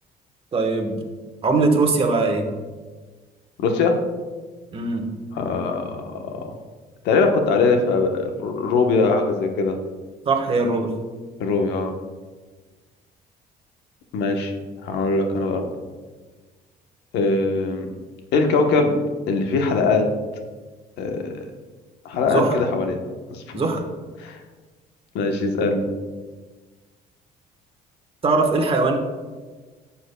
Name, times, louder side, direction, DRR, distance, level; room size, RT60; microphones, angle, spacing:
voice 1, 0.5-1.0 1.4-2.5 4.7-5.1 10.2-10.9 22.3-22.6 23.5-23.8 28.2-29.0, right 3 dB, 35° right, 3 dB, 1.3 m, -20 dB
voice 2, 3.6-4.0 5.3-6.4 7.0-9.8 11.4-11.9 14.1-14.5 14.8-15.6 17.1-17.9 18.3-18.9 19.3-20.1 21.0-21.4 22.0-23.0 23.3-23.6 24.2-24.4 25.1-25.9, left 3 dB, 85° left, 4 dB, 1.1 m, -21 dB
11.5 x 7.2 x 2.3 m, 1.3 s
cardioid pair, 110°, 17 cm